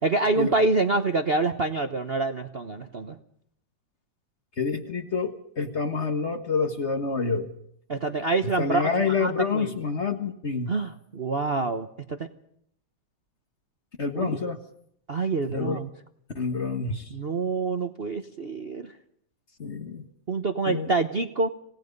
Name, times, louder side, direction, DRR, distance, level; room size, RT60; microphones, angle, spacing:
voice 1, 0.0-3.2 7.9-8.9 9.2-9.7 10.7-12.3 14.1-14.4 15.1-15.9 17.1-18.9 20.3-21.5, right 3 dB, 40° right, 6 dB, 1.0 m, -26 dB
voice 2, 4.6-7.5 8.4-10.7 14.0-14.6 15.5-15.8 16.3-17.1 19.6-20.0 20.7-20.9, left 4 dB, 35° left, 7 dB, 1.6 m, -28 dB
27.5 x 17.5 x 5.4 m, 0.68 s
omnidirectional pair, 2.2 m